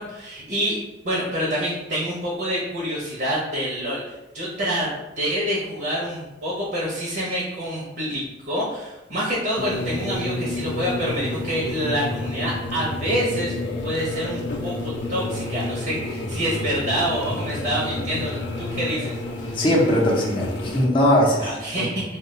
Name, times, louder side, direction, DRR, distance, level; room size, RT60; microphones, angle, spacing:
voice 1, 0.0-13.5 13.8-19.6 21.4-22.0, equal, 55° right, -5 dB, 0.7 m, -27 dB
sound 1, 9.6-20.9, left 2 dB, 75° left, 0.4 m, -30 dB
voice 2, 19.5-21.9, left 1 dB, 30° left, -4 dB, 0.5 m, -20 dB
2.3 x 2.1 x 3.6 m, 1.0 s
head